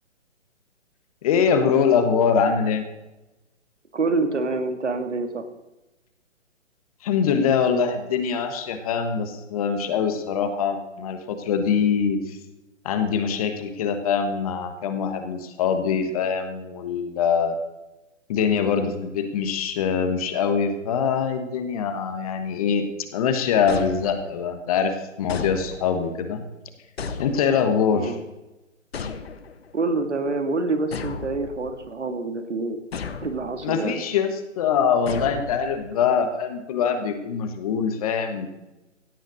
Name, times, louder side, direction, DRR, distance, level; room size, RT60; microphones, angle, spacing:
voice 1, 1.2-2.8 7.0-12.4 12.8-17.6 18.3-22.8 23.1-26.4 27.2-28.2 33.6-38.5, left 6 dB, 30° left, 8 dB, 1.4 m, -23 dB
voice 2, 3.9-5.5 27.9-28.2 29.7-32.8 33.2-34.0, right 3 dB, 70° right, 7 dB, 2.1 m, -26 dB
sound 1, 23.7-24.6 25.3-26.1 27.0-27.8 28.9-29.7 30.9-31.9 32.9-33.7 35.1-36.0, left 5 dB, 55° left, 1.3 m, -35 dB
16.5 x 7.9 x 6.4 m, 1.0 s
figure-of-eight pair, 135°, 37 cm